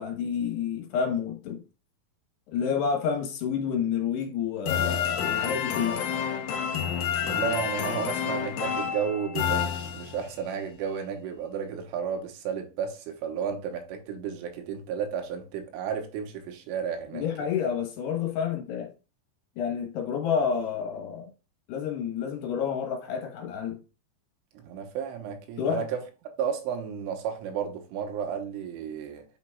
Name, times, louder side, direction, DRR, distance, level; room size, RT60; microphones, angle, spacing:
voice 1, 0.0-1.6 2.5-6.1 17.1-18.9 19.6-21.3 21.7-23.8 25.6-25.8, left 7 dB, 70° left, 3.0 m, -29 dB
sound 1, 4.7-10.4, left 8 dB, 85° left, 2.0 m, -29 dB
voice 2, 7.2-17.5 24.6-26.0 26.4-29.3, right 7 dB, 85° right, 3.7 m, -33 dB
9.2 x 5.9 x 2.3 m
omnidirectional pair, 5.5 m